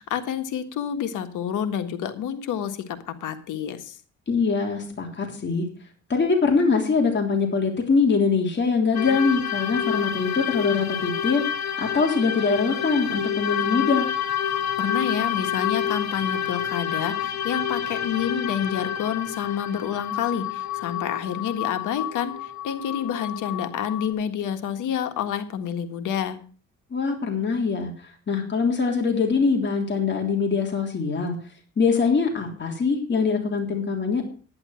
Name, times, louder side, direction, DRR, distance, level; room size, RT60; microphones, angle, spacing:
voice 1, 0.0-4.0 14.8-26.4, left 8 dB, 85° left, 7 dB, 1.7 m, -28 dB
voice 2, 4.3-5.7 6.1-11.4 11.8-14.1 26.9-31.4 31.8-34.2, left 4 dB, 35° left, 1 dB, 3.5 m, -23 dB
sound 1, 8.9-24.1, left 9 dB, 65° left, 1.6 m, -28 dB
11.0 x 9.9 x 5.8 m, 0.40 s
cardioid pair, 90°, 30 cm